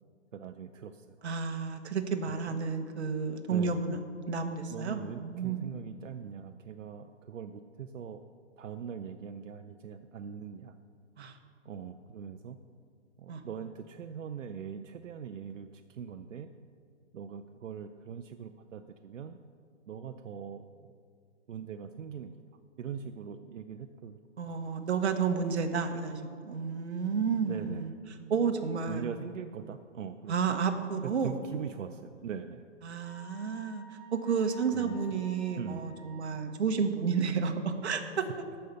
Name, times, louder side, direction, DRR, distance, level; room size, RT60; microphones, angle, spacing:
voice 1, 0.3-1.2 2.5-2.6 3.5-3.8 4.7-8.2 8.6-10.7 11.6-12.6 13.2-16.5 17.1-19.4 19.9-20.9 21.5-22.3 22.8-24.2 27.5-27.8 28.9-30.3 31.0-32.6 34.7-35.3 35.6-35.9, right 7 dB, 85° right, 7 dB, 0.7 m, -41 dB
voice 2, 1.2-4.0 4.3-5.6 11.2-11.4 13.3-13.4 24.4-27.9 28.3-29.0 30.3-31.3 32.8-33.8 34.1-38.2, right 5 dB, 60° right, 6 dB, 1.2 m, -31 dB
Wind instrument woodwind instrument, 33.0-36.5, left 1 dB, 5° right, 3.1 m, -52 dB
13.0 x 5.6 x 6.7 m, 2.2 s
hypercardioid pair, 170°, 37 cm